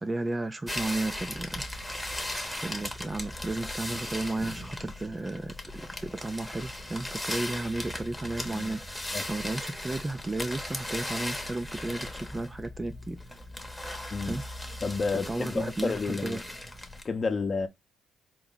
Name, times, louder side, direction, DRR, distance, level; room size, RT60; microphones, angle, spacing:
voice 1, 0.0-1.6 2.6-8.8 9.3-13.2 14.3-14.4 15.3-16.4, right 2 dB, 20° right, 0.4 m, -33 dB
sound 1, 0.7-17.0, left 1 dB, 5° left, 0.9 m, -37 dB
voice 2, 14.8-16.4 17.0-17.7, left 4 dB, 35° left, 0.7 m, -30 dB
4.5 x 2.0 x 3.8 m
cardioid pair, 90°, 0 cm